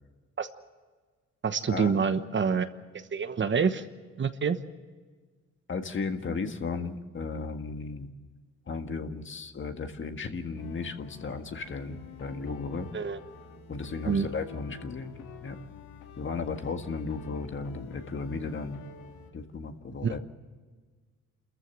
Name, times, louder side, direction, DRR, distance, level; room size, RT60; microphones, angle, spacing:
voice 1, 1.4-2.7 3.1-3.8 4.2-4.6 12.9-13.2 14.0-14.3 20.0-20.2, right 6 dB, 40° right, 10 dB, 1.1 m, -26 dB
voice 2, 5.7-8.1 8.7-12.9 13.7-15.2 15.4-15.6 16.2-18.8 19.3-20.2, left 4 dB, 40° left, 6 dB, 1.7 m, -35 dB
sound 1, 10.6-19.3, left 5 dB, 85° left, 2.3 m, -48 dB
28.0 x 14.5 x 7.5 m, 1.5 s
cardioid pair, 90°, 30 cm